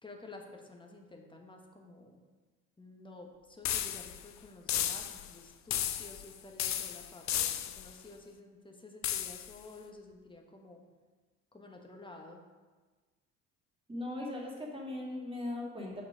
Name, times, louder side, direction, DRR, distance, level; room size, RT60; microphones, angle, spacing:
voice 1, 0.0-2.2 2.8-10.8 11.5-12.4, left 2 dB, 10° left, 2 dB, 1.3 m, -52 dB
sound 1, 3.6-4.2 4.7-5.3 5.7-6.3 6.6-7.9 9.0-9.5, left 11 dB, 40° left, 0.6 m, -34 dB
voice 2, 13.9-16.0, left 1 dB, 10° right, -2 dB, 2.0 m, -39 dB
5.8 x 5.6 x 4.9 m, 1.3 s
hypercardioid pair, 55°, 43 cm